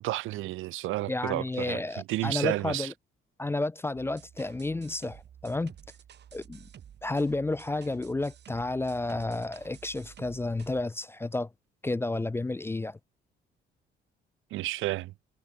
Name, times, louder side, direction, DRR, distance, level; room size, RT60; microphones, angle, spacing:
voice 1, 0.0-2.9 14.5-15.1, right 17 dB, 90° right, 0.8 m, -31 dB
voice 2, 1.1-2.9 3.4-5.7 6.3-6.7 7.0-11.5 11.8-13.0, left 2 dB, 10° left, 0.3 m, -31 dB
sound 1, 4.0-10.8, right 9 dB, 60° right, 2.1 m, -52 dB
cardioid pair, 90°, 20 cm